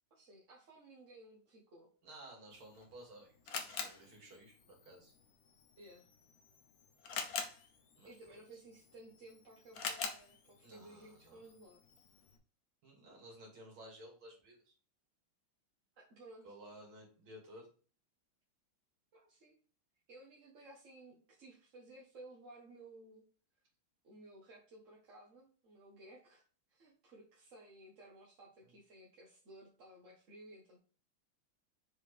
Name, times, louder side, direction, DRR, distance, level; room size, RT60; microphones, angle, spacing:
voice 1, 0.1-1.9 5.8-6.0 8.0-11.8 16.0-16.5 19.1-19.5 20.1-23.2 24.0-26.4 26.7-30.8, right 1 dB, 40° right, -3 dB, 1.4 m, -57 dB
voice 2, 2.0-5.1 8.0-8.4 10.6-11.4 12.8-14.7 16.4-17.7 28.6-28.7, right 1 dB, 70° right, -1 dB, 3.3 m, -55 dB
Camera, 2.5-12.4, left 5 dB, 55° left, 1.2 m, -47 dB
6.7 x 4.7 x 3.3 m, 0.39 s
omnidirectional pair, 2.3 m